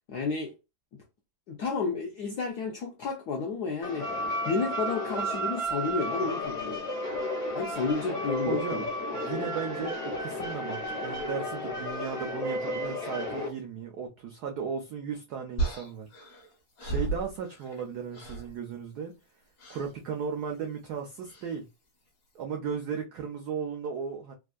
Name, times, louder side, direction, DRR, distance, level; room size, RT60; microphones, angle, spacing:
voice 1, 0.1-0.5 0.9-1.0 1.5-4.1 4.4-6.9 7.5-8.9, left 4 dB, 75° left, 0.9 m, -31 dB
sound 1, 3.8-13.5, equal, 40° left, 0.5 m, -33 dB
voice 2, 8.5-8.9 9.1-16.1 16.8-19.1 19.7-21.7 22.3-24.3, right 6 dB, 80° right, 0.8 m, -36 dB
sound 2, 15.6-17.9 18.1-18.5 19.6-19.9 21.3-21.5, right 3 dB, 55° left, 1.1 m, -34 dB
3.5 x 2.3 x 2.2 m
omnidirectional pair, 2.4 m